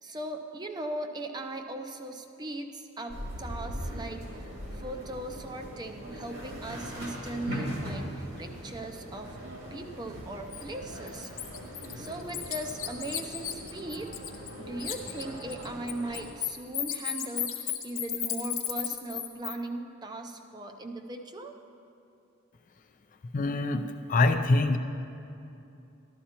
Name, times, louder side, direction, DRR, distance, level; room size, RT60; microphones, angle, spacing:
voice 1, 0.0-9.4 9.7-11.3 12.0-14.1 14.6-17.5 17.8-21.5, right 2 dB, 20° right, 5 dB, 0.5 m, -38 dB
sound 1, 3.1-16.2, equal, 70° right, 2.3 m, -40 dB
Bird, 10.5-10.6 11.1-14.5 14.8-19.5, left 11 dB, 85° left, 0.9 m, -34 dB
voice 2, 23.3-24.8, left 2 dB, 40° left, 8 dB, 0.3 m, -25 dB
12.5 x 12.5 x 2.9 m, 2.7 s
head